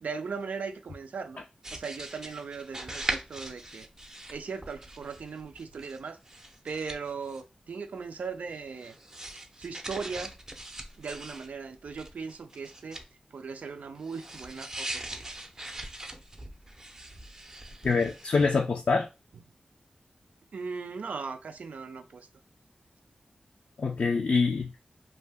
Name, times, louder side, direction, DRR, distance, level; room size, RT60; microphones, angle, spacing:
voice 1, 0.0-1.4 1.7-3.9 4.3-6.2 6.6-9.0 9.6-10.3 11.0-13.0 13.3-15.2 20.5-22.3, right 5 dB, 85° right, 0.4 m, -38 dB
sound 1, 1.6-6.0 6.3-7.4 8.5-11.5 11.8-13.0 13.9-18.5, right 1 dB, 20° right, 0.5 m, -41 dB
voice 2, 17.8-19.1 23.8-24.8, left 4 dB, 65° left, 0.3 m, -25 dB
2.5 x 2.2 x 3.3 m
wide cardioid pair, 65°, 2 cm